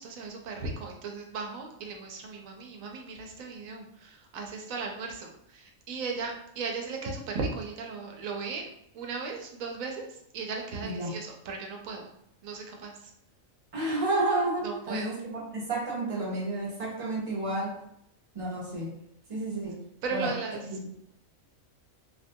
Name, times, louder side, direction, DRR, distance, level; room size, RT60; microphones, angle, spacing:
voice 1, 0.0-8.7 8.9-10.0 10.3-12.1 12.4-13.1 14.6-15.2 20.0-20.7, right 4 dB, 80° right, 2 dB, 1.0 m, -36 dB
voice 2, 10.8-11.2 13.7-17.8 18.3-19.0 19.3-19.8 20.1-20.3 20.7-20.9, right 2 dB, 35° right, -4 dB, 0.5 m, -31 dB
2.7 x 2.2 x 2.6 m, 0.75 s
omnidirectional pair, 1.4 m